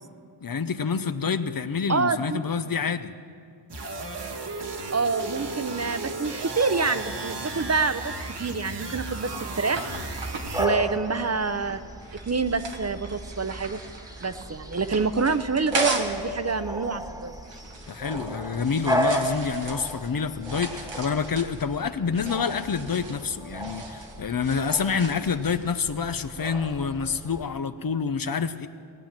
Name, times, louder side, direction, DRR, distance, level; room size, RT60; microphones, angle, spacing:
voice 1, 0.4-3.1 17.9-28.7, left 6 dB, 55° left, 11 dB, 0.7 m, -27 dB
voice 2, 1.9-2.4 4.9-8.1 8.4-9.8 10.6-11.8 12.3-13.8 14.2-17.3, right 4 dB, 35° right, 11 dB, 0.7 m, -27 dB
sound 1, 3.7-10.7, right 3 dB, 70° right, 1.6 m, -35 dB
sound 2, 8.5-16.2 16.6-25.6, right 3 dB, 90° right, 1.5 m, -39 dB
Bark / Bird vocalization bird call bird song, 9.9-27.4, right 1 dB, 10° right, 1.4 m, -34 dB
18.5 x 8.9 x 7.4 m, 2.2 s
wide cardioid pair, 55°, 43 cm